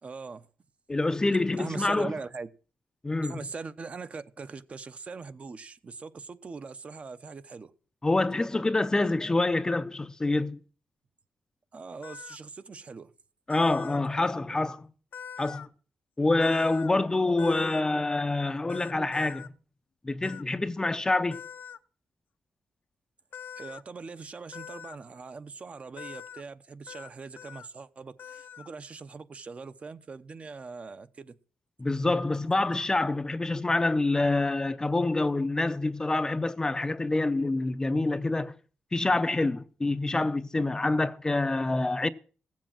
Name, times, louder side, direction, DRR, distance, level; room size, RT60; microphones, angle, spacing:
voice 1, 0.0-0.5 1.6-2.5 3.3-7.7 11.7-13.1 23.6-31.3, right 4 dB, 40° right, 0.9 m, -41 dB
voice 2, 0.9-2.1 3.0-3.4 8.0-10.6 13.5-14.9 15.4-15.7 16.2-19.4 20.0-21.4 31.8-38.5 38.9-42.1, left 2 dB, 20° left, 0.6 m, -26 dB
sound 1, 12.0-12.4 13.5-14.0 15.1-15.7 16.4-16.9 17.4-17.8 18.7-19.5 20.2-20.4 21.3-21.8 23.3-23.8 24.5-25.0 26.0-26.4 26.9-27.1 27.4-27.7 28.2-28.7, left 8 dB, 75° left, 0.8 m, -43 dB
15.5 x 7.6 x 7.4 m
cardioid pair, 110°, 3 cm